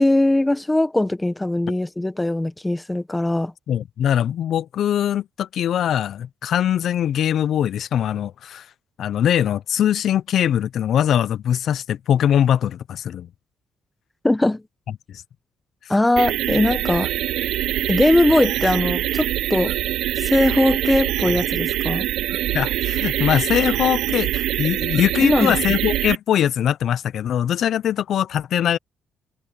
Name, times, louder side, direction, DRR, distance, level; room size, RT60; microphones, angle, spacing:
voice 1, 0.0-3.5 14.2-14.6 15.9-17.1 17.9-19.7 20.2-22.1 25.2-25.5, left 1 dB, 10° left, 1.2 m, -20 dB
voice 2, 3.7-8.7 9.0-13.3 15.1-15.2 15.8-15.9 22.5-28.8, left 10 dB, 70° left, 0.5 m, -21 dB
sound 1, 16.2-26.2, right 13 dB, 85° right, 0.7 m, -24 dB
cardioid pair, 90°, 0 cm